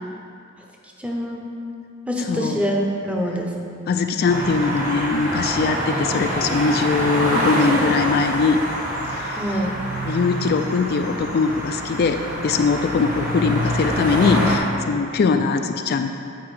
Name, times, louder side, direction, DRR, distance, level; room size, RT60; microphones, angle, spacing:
voice 1, 1.0-1.5 2.1-3.5 9.4-9.8, equal, 5° right, -1 dB, 0.8 m, -25 dB
voice 2, 2.3-2.6 3.9-8.6 9.1-9.6 10.0-16.1, left 4 dB, 50° left, 6 dB, 0.3 m, -21 dB
sound 1, 4.2-14.6, equal, 40° right, 1.5 m, -25 dB
9.2 x 4.5 x 4.8 m, 2.4 s
head